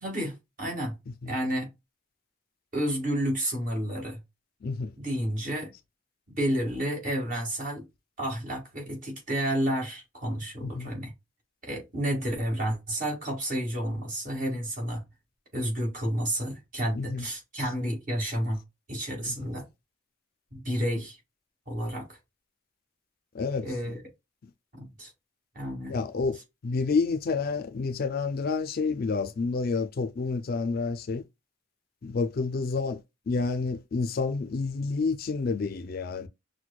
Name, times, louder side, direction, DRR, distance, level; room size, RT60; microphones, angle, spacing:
voice 1, 0.0-1.0 1.2-1.7 2.7-4.2 5.0-5.7 6.4-7.8 8.2-11.1 11.6-15.0 15.5-18.6 18.9-19.6 20.5-21.2 21.7-22.1 23.6-24.0 24.7-25.1 25.5-26.0, equal, 40° right, 1.8 m, -30 dB
voice 2, 4.6-4.9 10.6-10.9 16.9-17.3 19.3-19.4 23.3-23.9 24.4-24.5 25.9-26.4 26.6-31.2 32.0-36.3, left 4 dB, 45° left, 0.4 m, -29 dB
6.2 x 2.2 x 2.2 m
head